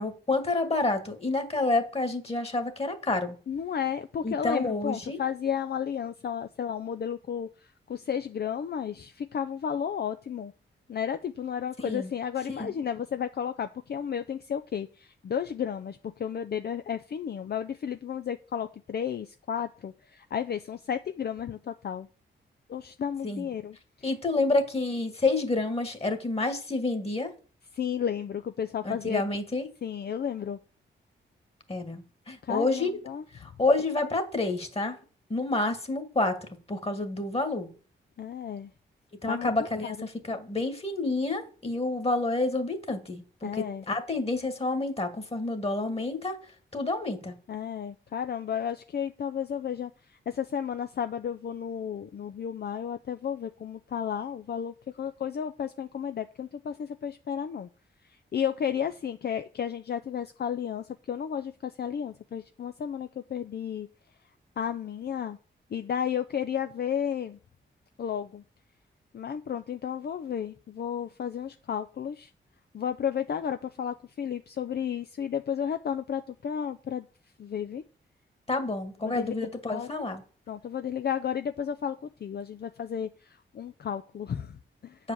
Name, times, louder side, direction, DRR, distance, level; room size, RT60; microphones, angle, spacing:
voice 1, 0.0-3.3 4.2-5.2 11.8-12.1 12.6-12.7 23.2-23.5 24.0-27.3 28.8-29.7 31.7-32.9 33.3-35.0 35.3-36.4 36.7-37.7 39.2-46.4 46.7-47.3 78.5-80.2 85.0-85.1, left 2 dB, 30° left, 8 dB, 1.8 m, -29 dB
voice 2, 3.5-7.5 7.9-10.5 10.9-22.1 22.7-23.8 27.7-29.2 29.8-30.6 32.4-33.2 38.2-38.7 39.3-39.5 39.8-40.1 43.4-43.8 47.5-49.9 50.3-57.7 58.3-63.9 64.6-65.4 65.7-67.4 68.0-68.4 69.1-72.3 72.7-77.1 77.4-77.8 79.0-79.3 79.7-80.1 80.5-82.0 82.2-85.0, left 8 dB, 50° left, 9 dB, 0.5 m, -33 dB
8.0 x 4.9 x 7.1 m, 0.39 s
cardioid pair, 80°, 20 cm